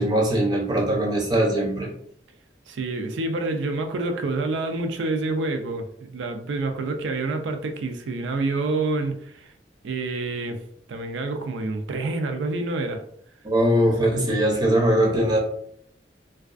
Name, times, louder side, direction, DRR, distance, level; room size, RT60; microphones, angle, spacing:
voice 1, 0.0-1.9 13.4-15.4, right 1 dB, 25° right, -1 dB, 0.5 m, -21 dB
voice 2, 2.7-9.5 9.8-10.6 10.9-13.0, right 3 dB, 85° right, 6 dB, 0.4 m, -27 dB
2.3 x 2.3 x 2.4 m, 0.67 s
head